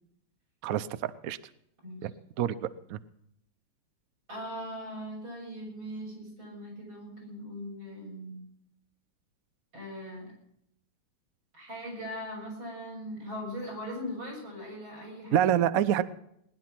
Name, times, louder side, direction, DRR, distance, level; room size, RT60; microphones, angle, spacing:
voice 1, 0.6-1.4 2.0-2.1 2.4-2.6 2.9-3.0 15.3-16.0, right 10 dB, 80° right, 15 dB, 0.7 m, -26 dB
voice 2, 4.3-8.4 9.7-10.3 11.5-15.5, equal, 65° right, 0 dB, 8.2 m, -40 dB
20.0 x 11.0 x 6.0 m, 0.74 s
omnidirectional pair, 2.4 m